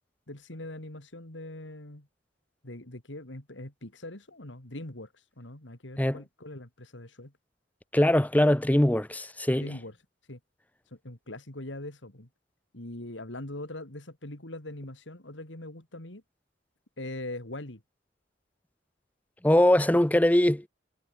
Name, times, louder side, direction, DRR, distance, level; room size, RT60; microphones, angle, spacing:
voice 1, 0.3-2.1 2.6-7.3 9.5-10.0 10.3-10.4 10.9-12.3 12.7-16.2 17.0-17.8, left 1 dB, 90° left, 3.5 m, -41 dB
voice 2, 7.9-9.7 19.4-20.7, left 1 dB, 10° left, 0.7 m, -22 dB
head